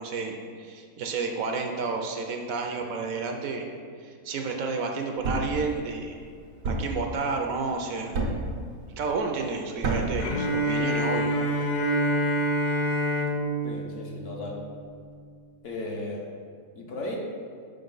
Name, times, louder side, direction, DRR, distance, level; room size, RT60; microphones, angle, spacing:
voice 1, 0.0-3.7 4.0-6.3 6.6-8.6 9.0-11.3, right 4 dB, 70° right, 3 dB, 1.0 m, -31 dB
Thump thud, 5.2-5.6 6.6-7.0 8.1-8.5 9.8-10.2, right 3 dB, 90° right, 1.4 m, -28 dB
Bowed string instrument, 10.2-15.1, equal, 80° left, 0.4 m, -27 dB
voice 2, 13.6-14.6 15.6-16.3 16.7-17.2, left 2 dB, 55° left, -1 dB, 1.2 m, -35 dB
6.5 x 5.1 x 3.9 m, 2.2 s
omnidirectional pair, 1.6 m